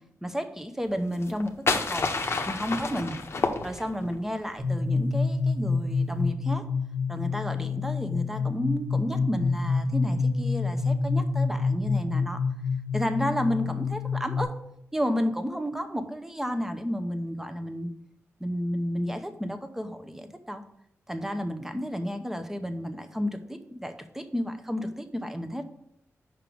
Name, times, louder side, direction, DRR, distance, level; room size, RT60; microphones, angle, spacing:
voice 1, 0.2-2.1 2.5-3.2 3.6-6.7 7.1-12.4 12.9-14.5 14.9-17.9 18.4-20.6 21.1-25.6, equal, 5° right, 8 dB, 0.7 m, -31 dB
sound 1, 1.1-4.2, left 3 dB, 50° left, 0.8 m, -29 dB
sound 2, 4.6-14.4, left 4 dB, 30° right, 1.4 m, -27 dB
5.4 x 5.1 x 6.1 m, 0.77 s
wide cardioid pair, 90°, 5 cm